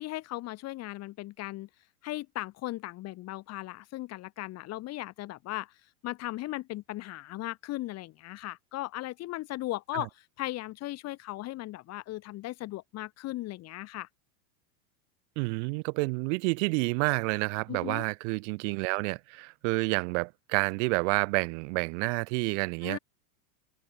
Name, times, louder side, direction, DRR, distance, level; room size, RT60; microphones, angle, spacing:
voice 1, 0.0-1.7 2.0-5.7 6.0-14.1 17.7-18.0 22.8-23.0, left 17 dB, 35° left, 2.1 m, -37 dB
voice 2, 15.4-23.0, right 31 dB, 50° right, 1.2 m, -29 dB
supercardioid pair, 150°, 46 cm